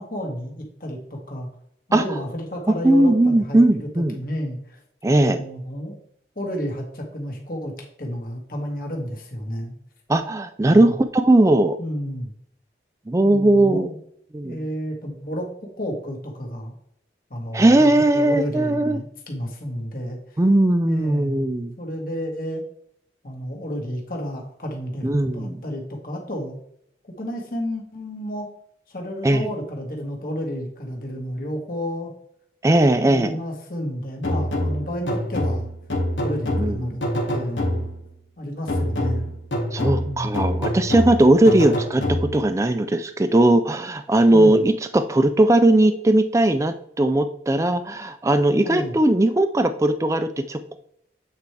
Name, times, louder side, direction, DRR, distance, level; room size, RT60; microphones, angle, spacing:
voice 1, 0.0-1.5 1.9-3.9 4.1-4.8 5.1-6.0 6.4-9.7 10.7-10.9 11.8-12.3 13.2-14.0 14.4-16.7 17.3-20.4 20.8-21.4 21.8-22.6 23.2-26.6 27.2-28.5 28.9-32.1 33.0-35.7 36.2-37.0 37.3-37.9 38.4-39.3 40.0-40.5 44.3-44.6 48.6-48.9, equal, 50° left, 0 dB, 1.7 m, -31 dB
voice 2, 2.8-4.2 5.0-5.4 10.1-11.8 13.1-13.9 14.3-14.6 17.5-19.0 20.4-21.7 25.0-25.6 29.2-29.5 32.6-33.4 36.6-36.8 39.7-50.8, right 1 dB, 15° right, 8 dB, 0.3 m, -18 dB
sound 1, 34.2-38.1 38.7-42.6, left 1 dB, 90° left, 1.6 m, -26 dB
8.3 x 4.5 x 3.3 m, 0.71 s
head